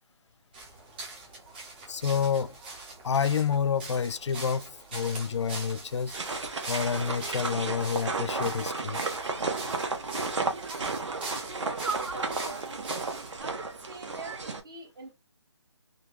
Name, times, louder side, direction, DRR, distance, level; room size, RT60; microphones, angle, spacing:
sound 1, 0.5-13.4, right 3 dB, 20° right, 0.8 m, -43 dB
voice 1, 1.9-2.6 3.0-6.1 6.7-9.0, left 7 dB, 75° left, 0.4 m, -29 dB
sound 2, 6.1-14.6, right 3 dB, 75° right, 1.0 m, -33 dB
voice 2, 11.7-12.8 13.4-15.1, right 3 dB, 50° right, 1.3 m, -44 dB
3.7 x 2.2 x 2.9 m
hypercardioid pair, 165°, 15 cm